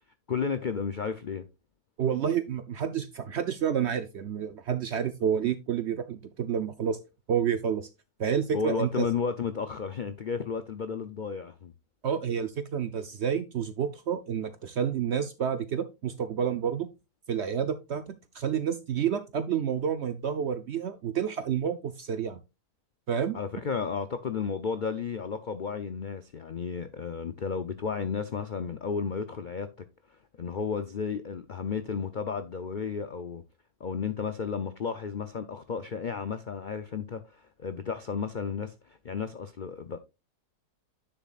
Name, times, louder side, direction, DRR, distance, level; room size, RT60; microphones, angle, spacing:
voice 1, 0.3-1.4 8.5-11.7 23.3-29.7 30.1-33.4 33.8-40.0, left 6 dB, 85° left, 0.4 m, -33 dB
voice 2, 2.0-7.0 7.3-7.9 8.2-9.1 12.0-16.9 17.3-22.4 23.1-23.4, right 8 dB, 65° right, 0.7 m, -29 dB
9.8 x 7.1 x 2.4 m
omnidirectional pair, 1.7 m